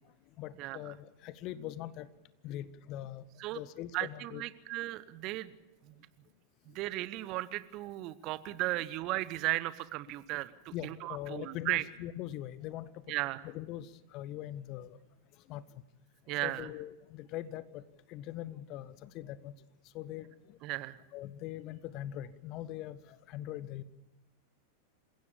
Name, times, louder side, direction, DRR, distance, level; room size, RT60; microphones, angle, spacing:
voice 1, 0.4-2.1 2.4-3.2 3.5-4.4 10.2-10.3 10.7-13.0 13.4-15.0 15.5-15.6 16.3-17.8 18.1-19.5 19.9-20.6 21.1-23.8, left 13 dB, 40° left, 16 dB, 1.1 m, -42 dB
voice 2, 3.9-5.5 5.9-6.0 6.7-11.8 13.1-13.4 16.3-16.7 20.6-21.0, right 18 dB, 40° right, 16 dB, 1.0 m, -35 dB
28.0 x 16.5 x 7.0 m, 0.99 s
figure-of-eight pair, 90°, 0 cm